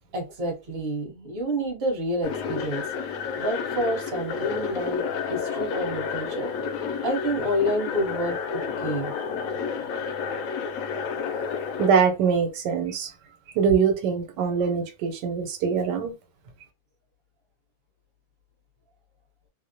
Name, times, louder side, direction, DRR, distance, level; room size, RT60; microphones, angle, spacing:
voice 1, 0.1-2.8 3.4-5.0 5.3-6.5 7.0-9.1, equal, 40° right, 1.0 m, -28 dB
sound 1, 2.2-11.9, left 6 dB, 70° left, 0.8 m, -30 dB
voice 2, 11.8-13.1 13.5-16.1, right 6 dB, 90° right, 1.3 m, -23 dB
2.8 x 2.0 x 2.6 m
omnidirectional pair, 1.8 m